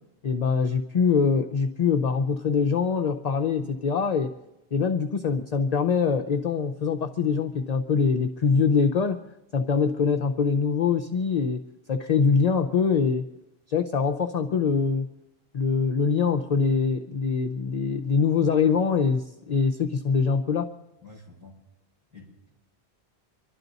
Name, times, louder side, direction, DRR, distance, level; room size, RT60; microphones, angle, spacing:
voice 1, 0.2-4.3 4.7-9.2 9.5-11.6 11.9-13.2 13.7-15.1 15.5-20.7, left 5 dB, 45° left, 5 dB, 0.6 m, -23 dB
voice 2, 21.0-21.6 22.1-22.5, left 3 dB, 15° right, -3 dB, 5.3 m, -49 dB
25.5 x 12.0 x 4.0 m, 0.95 s
omnidirectional pair, 1.1 m